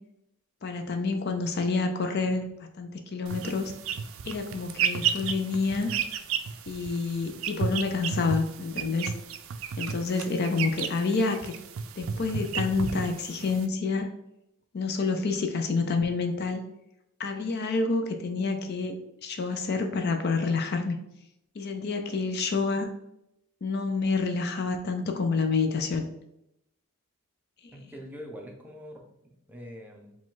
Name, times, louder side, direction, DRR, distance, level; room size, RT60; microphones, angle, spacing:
voice 1, 0.6-2.5 2.8-3.7 4.3-5.9 6.7-9.1 9.8-11.5 12.0-14.1 14.7-16.6 17.2-21.0 21.6-22.9 23.6-26.0, left 4 dB, 50° left, 5 dB, 0.5 m, -28 dB
sound 1, 3.3-13.7, right 7 dB, 70° right, 0.4 m, -33 dB
voice 2, 27.7-30.2, equal, 10° right, 1 dB, 0.5 m, -44 dB
4.9 x 2.3 x 3.7 m, 0.80 s
head